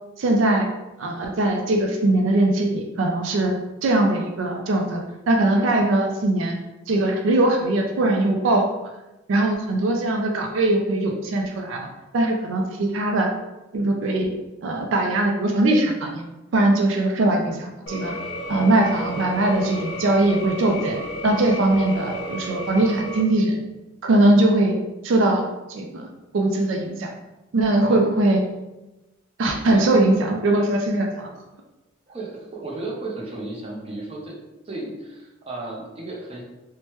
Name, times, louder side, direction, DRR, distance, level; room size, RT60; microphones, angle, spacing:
voice 1, 0.2-0.7 1.0-3.5 3.8-6.6 6.9-8.7 9.3-11.9 12.1-13.3 13.7-14.3 14.6-16.2 16.5-18.1 18.5-21.0 21.2-23.6 24.0-24.8 25.0-26.1 26.3-27.1 27.5-28.4 29.4-31.3, right 2 dB, 85° right, 2 dB, 0.4 m, -21 dB
sound 1, 17.9-23.2, equal, 65° left, 0.6 m, -32 dB
voice 2, 32.1-34.3 34.6-36.4, right 2 dB, 30° right, -3 dB, 0.6 m, -34 dB
3.0 x 2.1 x 3.0 m, 1.0 s
head